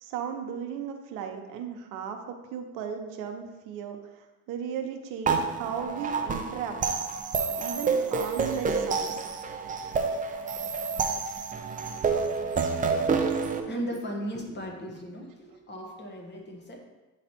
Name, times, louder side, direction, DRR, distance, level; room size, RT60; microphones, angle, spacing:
voice 1, 0.0-6.8 7.6-9.2, right 7 dB, 70° right, 4 dB, 0.9 m, -36 dB
sound 1, 5.3-13.6, right 5 dB, 25° right, 0.6 m, -28 dB
voice 2, 13.6-16.8, equal, 30° left, 1 dB, 1.4 m, -36 dB
9.0 x 3.3 x 4.4 m, 1.1 s
supercardioid pair, 105°, 33 cm